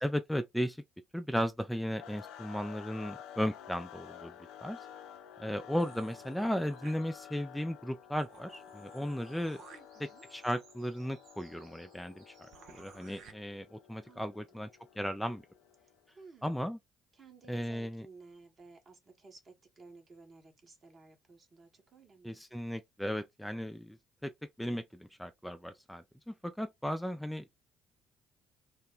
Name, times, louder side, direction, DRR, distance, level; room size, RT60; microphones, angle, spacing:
voice 1, 0.0-0.8 1.1-4.3 4.6-4.8 5.4-9.6 10.3-12.3 12.7-14.7 15.0-15.4 16.4-16.8 17.5-18.0 22.2-24.0 24.2-24.3 24.6-27.5, equal, 5° left, 0.4 m, -35 dB
sound 1, 2.0-16.1, left 9 dB, 70° left, 0.4 m, -52 dB
sound 2, 5.8-7.5 7.9-8.0 8.2-13.3, right 5 dB, 65° right, 0.6 m, -57 dB
voice 2, 9.7-10.2 14.1-14.6 15.8-16.6 17.1-22.4, right 3 dB, 40° right, 1.2 m, -56 dB
3.3 x 2.2 x 3.6 m
hypercardioid pair, 50°, 0 cm